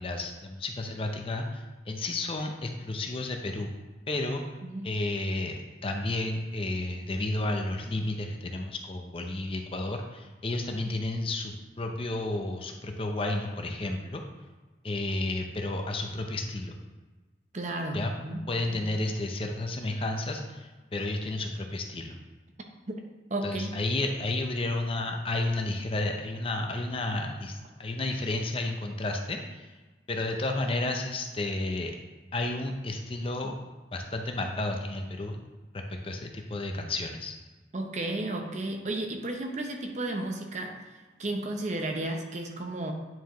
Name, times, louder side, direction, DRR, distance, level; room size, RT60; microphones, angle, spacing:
voice 1, 0.0-3.7 4.1-4.4 4.8-14.2 14.8-16.8 17.9-18.1 18.5-22.1 23.4-29.7 30.1-31.9 32.3-33.6 33.9-35.4 35.7-37.3, left 2 dB, 30° left, 3 dB, 0.6 m, -32 dB
voice 2, 17.5-18.4 18.7-18.8 22.9-23.0 23.3-23.7 37.7-40.7 41.2-42.9, right 2 dB, 40° right, 3 dB, 0.7 m, -33 dB
9.2 x 4.7 x 3.0 m, 1.3 s
head